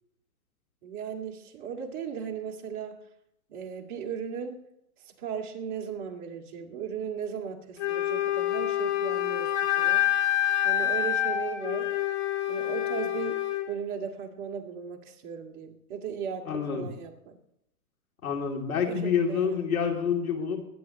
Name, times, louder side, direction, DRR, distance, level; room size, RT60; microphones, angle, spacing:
voice 1, 0.8-3.0 3.5-4.6 5.1-10.0 10.6-11.9 12.5-13.4 13.7-17.4 18.8-19.6, right 7 dB, 35° right, 1 dB, 2.4 m, -37 dB
Wind instrument woodwind instrument, 7.8-13.7, left 12 dB, 55° left, 2.7 m, -27 dB
voice 2, 16.5-16.9 18.2-20.6, left 6 dB, 80° left, 2 dB, 3.0 m, -28 dB
24.0 x 10.5 x 3.1 m, 0.83 s
hypercardioid pair, 125°, 42 cm